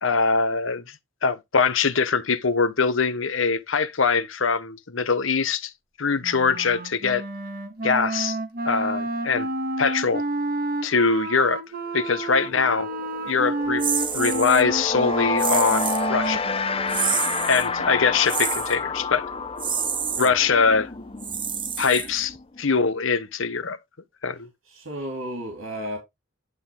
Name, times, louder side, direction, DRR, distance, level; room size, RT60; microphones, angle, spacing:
voice 1, 0.0-0.8 1.2-5.7 6.0-7.2 7.8-8.4 8.6-9.5 9.8-10.2 10.8-11.6 11.9-12.9 13.2-13.8 14.1-16.4 17.5-19.3 20.2-20.9 21.8-23.8 24.2-24.5, left 5 dB, 70° left, 1.0 m, -22 dB
Wind instrument woodwind instrument, 6.2-18.3, right 2 dB, 50° right, 1.5 m, -30 dB
sound 1, 12.0-12.2 12.5-23.0, left 4 dB, 30° left, 0.8 m, -30 dB
sound 2, 13.8-14.6 15.4-16.1 16.9-17.7 18.3-18.8 19.6-20.3 21.2-22.4, right 7 dB, 25° right, 0.9 m, -28 dB
voice 2, 20.1-20.5 21.3-21.4 24.6-26.0, equal, 85° right, 3.1 m, -34 dB
11.0 x 3.9 x 3.8 m
head